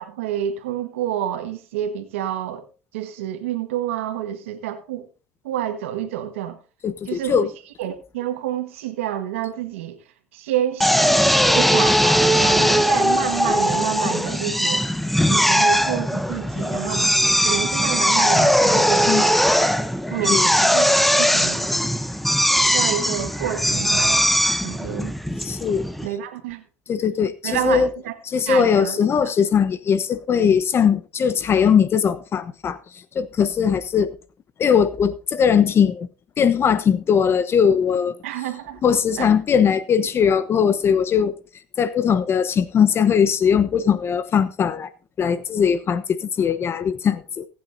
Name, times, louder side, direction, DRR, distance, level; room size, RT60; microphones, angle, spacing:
voice 1, 0.0-2.6 2.9-5.1 5.4-6.6 7.1-7.5 7.8-10.0 10.3-14.9 15.2-17.1 17.4-19.4 20.1-20.9 21.2-21.7 22.7-25.1 26.0-26.6 27.4-28.1 28.5-29.0 38.2-38.8 39.2-39.3, right 11 dB, 90° right, 1.5 m, -28 dB
voice 2, 6.8-7.5 19.1-19.3 20.3-20.5 25.4-25.9 26.9-27.9 28.3-34.1 34.6-36.1 36.4-38.2 38.8-41.3 41.8-44.9 45.2-47.5, left 7 dB, 35° left, 0.9 m, -20 dB
Drill, 10.8-26.1, equal, ahead, 0.8 m, -19 dB
21.0 x 8.7 x 2.7 m
supercardioid pair, 95°, 7 cm